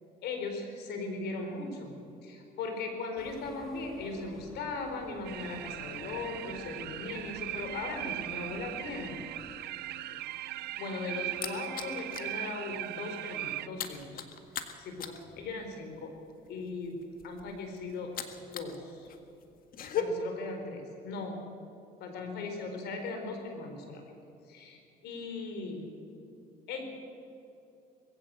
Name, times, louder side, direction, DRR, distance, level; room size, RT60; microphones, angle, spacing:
voice 1, 0.2-2.0 2.2-9.2 10.1-10.2 10.8-14.2 14.8-16.1 16.5-18.1 18.5-19.1 19.9-21.4 22.0-24.0 24.5-25.9 26.7-26.8, left 3 dB, 75° left, 4 dB, 4.3 m, -38 dB
sound 1, 3.2-9.9, left 1 dB, ahead, 3.7 m, -53 dB
sound 2, 5.2-13.7, right 14 dB, 70° right, 0.8 m, -39 dB
sound 3, 10.6-12.4 12.7-12.9 13.2-18.8 19.1-20.0, left 10 dB, 60° left, 1.8 m, -39 dB
21.0 x 16.0 x 7.8 m, 2.7 s
cardioid pair, 110°, 17 cm